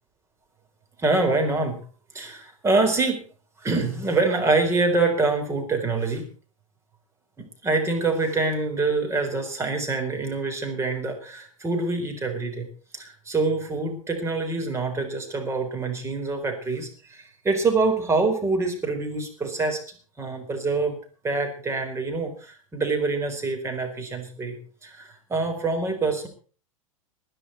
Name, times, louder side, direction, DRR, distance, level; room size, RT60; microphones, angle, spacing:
voice 1, 1.0-1.8 2.1-3.2 3.6-6.3 7.4-12.7 12.9-19.8 20.2-21.0 21.2-24.6 24.8-26.3, right 3 dB, 15° right, 4 dB, 4.3 m, -25 dB
19.5 x 11.0 x 4.4 m, 0.39 s
hypercardioid pair, 100°, 17 cm